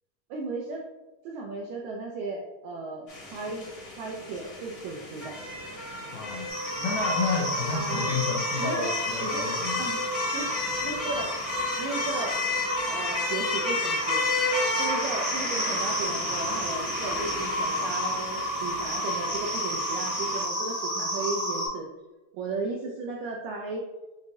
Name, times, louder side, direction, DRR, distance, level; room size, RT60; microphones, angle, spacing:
voice 1, 0.3-0.8 1.3-5.4 7.7-8.2 8.6-9.0 9.2-9.5 9.8-10.1 10.3-10.6 10.8-11.3 11.8-12.4 12.9-14.2 14.8-21.9 22.3-23.9, right 3 dB, 85° right, -1 dB, 1.6 m, -35 dB
sound 1, 3.1-20.4, left 3 dB, 50° left, 1.3 m, -33 dB
voice 2, 6.1-6.5 6.8-9.8, left 4 dB, 90° left, -3 dB, 1.6 m, -31 dB
sound 2, 6.5-21.7, equal, 50° right, 1.6 m, -31 dB
6.3 x 2.6 x 2.6 m, 1.1 s
omnidirectional pair, 3.8 m